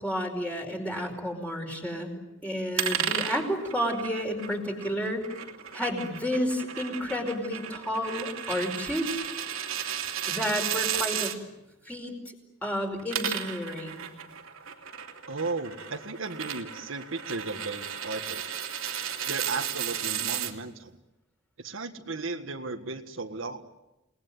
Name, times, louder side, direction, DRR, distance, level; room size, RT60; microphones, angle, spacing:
voice 1, 0.0-5.2 5.7-9.2 10.3-11.3 11.8-12.1 12.6-14.0, equal, 5° left, 2 dB, 5.0 m, -31 dB
sound 1, 2.8-11.4 12.9-20.5, right 9 dB, 85° right, 2.8 m, -34 dB
voice 2, 15.3-18.5 19.3-20.9 21.6-23.7, right 3 dB, 70° right, 5 dB, 1.7 m, -35 dB
29.0 x 20.0 x 9.5 m, 0.98 s
head